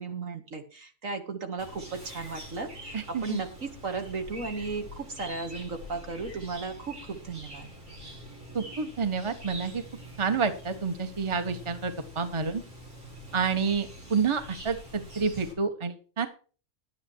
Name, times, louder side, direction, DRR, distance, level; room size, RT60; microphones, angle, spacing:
voice 1, 0.0-7.7, right 4 dB, 65° right, 5 dB, 2.2 m, -35 dB
Chirp tweet, 1.6-15.5, equal, 80° right, 6.8 m, -45 dB
voice 2, 2.9-3.4 8.5-9.8 10.2-12.6 13.3-16.3, right 5 dB, 20° right, 8 dB, 1.2 m, -29 dB
11.5 x 9.2 x 4.6 m, 0.38 s
omnidirectional pair, 1.5 m